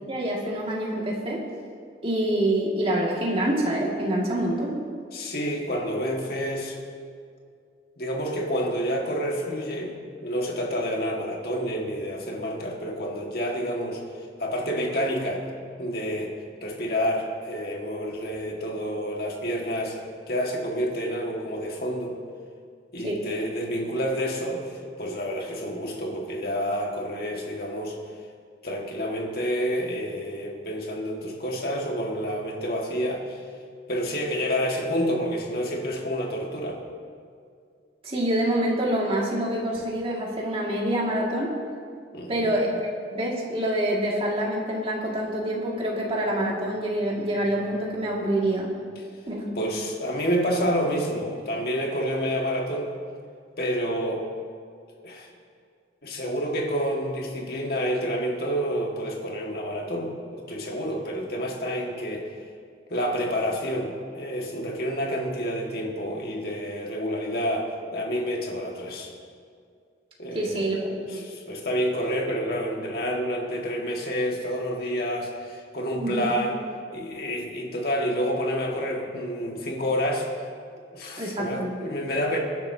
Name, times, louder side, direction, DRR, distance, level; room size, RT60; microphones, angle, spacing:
voice 1, 0.1-1.4 2.0-4.8 23.0-23.2 38.0-41.5 42.3-42.8 43.1-48.7 49.3-49.5 70.3-70.8 71.1-71.2 76.0-76.3 81.2-81.7, right 1 dB, 30° right, -3 dB, 2.2 m, -26 dB
voice 2, 5.1-6.8 8.0-10.0 10.2-14.0 14.4-15.5 15.8-16.3 16.6-20.0 20.3-22.2 22.9-28.0 28.6-33.4 33.9-36.8 42.1-42.6 49.6-52.9 53.6-54.2 55.0-55.3 56.0-62.3 62.9-69.1 70.2-76.6 76.9-80.3 80.9-82.4, equal, 55° left, 0 dB, 1.9 m, -29 dB
21.5 x 10.5 x 2.8 m, 2.3 s
head